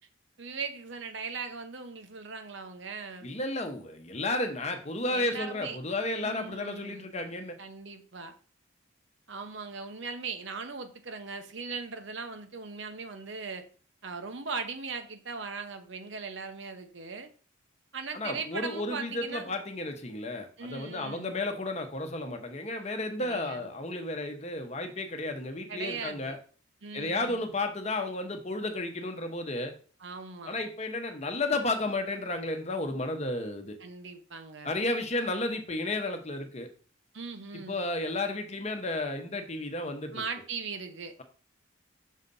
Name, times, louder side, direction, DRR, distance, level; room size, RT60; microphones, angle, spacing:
voice 1, 0.4-3.3 5.1-5.8 6.1-7.1 7.6-8.3 9.3-13.7 14.0-17.3 17.9-19.6 20.6-21.3 23.2-23.7 25.7-26.4 26.8-27.4 30.0-30.6 33.8-34.7 37.1-37.8 40.1-41.1, right 4 dB, 65° right, 8 dB, 0.9 m, -39 dB
voice 2, 3.2-7.6 18.1-26.4 26.9-29.7 30.5-33.8 34.6-36.7 37.7-40.2, left 2 dB, 35° left, 5 dB, 1.0 m, -32 dB
6.4 x 4.0 x 5.4 m, 0.41 s
head